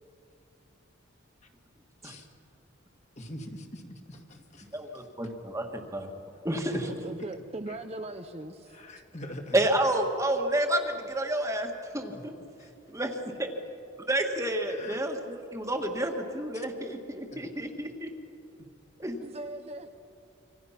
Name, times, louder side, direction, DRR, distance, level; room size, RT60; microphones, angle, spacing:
voice 1, 3.2-4.7 8.7-9.5 12.1-12.2 12.6-12.7 14.7-15.0 17.3-17.4, left 1 dB, 35° left, 3 dB, 2.0 m, -43 dB
voice 2, 4.7-6.1 6.4-6.9 9.5-12.3 12.9-13.5 14.1-18.1 19.0-19.2, right 1 dB, 15° right, 3 dB, 1.8 m, -30 dB
voice 3, 6.9-8.7 19.2-19.9, right 1 dB, 30° right, 6 dB, 0.8 m, -39 dB
26.5 x 26.0 x 5.9 m, 2.7 s
head